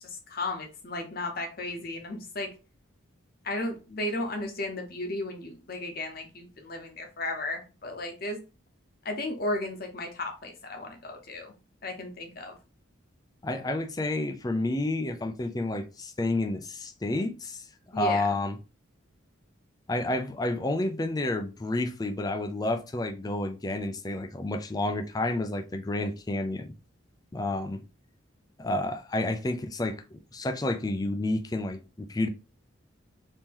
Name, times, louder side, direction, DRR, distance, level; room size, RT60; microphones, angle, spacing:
voice 1, 0.0-2.5 3.4-8.4 9.0-11.5 11.8-12.6 17.9-18.2, left 2 dB, 45° left, 0.8 m, -34 dB
voice 2, 13.4-17.6 17.9-18.6 19.9-26.7 27.3-27.8 28.6-32.3, left 2 dB, 20° left, 0.3 m, -30 dB
3.6 x 2.8 x 2.9 m
head